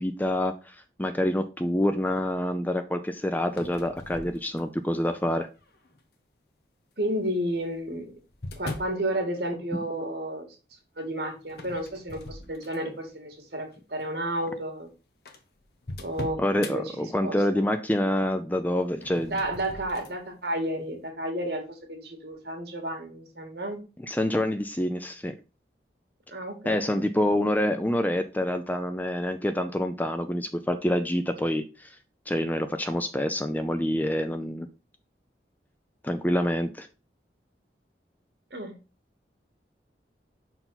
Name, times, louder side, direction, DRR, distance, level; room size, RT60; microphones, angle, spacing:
voice 1, 0.0-5.5 16.4-19.4 24.0-25.3 26.7-31.9 32.3-34.7 36.0-36.9, left 1 dB, 10° left, 8 dB, 0.4 m, -27 dB
sound 1, 3.4-4.9 5.6-6.0 7.1-9.0 11.5-13.0 13.5-13.8 14.5-14.6 14.8-14.9 15.2-16.8 18.9-20.2, left 2 dB, 65° left, 1.0 m, -41 dB
voice 2, 7.0-8.1 8.6-10.5 11.0-14.9 16.0-16.4 16.7-17.6 19.2-23.8 26.3-27.0 38.5-38.7, right 1 dB, 65° right, 3 dB, 2.0 m, -32 dB
5.7 x 4.5 x 3.9 m, 0.31 s
head